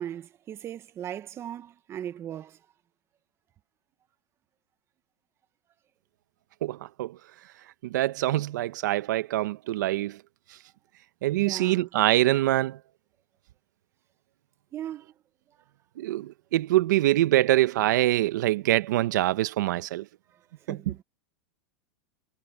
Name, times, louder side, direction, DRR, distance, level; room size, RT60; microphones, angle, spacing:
voice 1, 0.0-2.6 11.4-11.9 14.7-15.1 20.3-21.0, right 10 dB, 25° right, 1.1 m, -38 dB
voice 2, 6.6-7.2 7.8-10.2 11.2-12.8 16.0-20.0 20.7-20.9, right 15 dB, 75° right, 1.0 m, -24 dB
supercardioid pair, 140°, 10 cm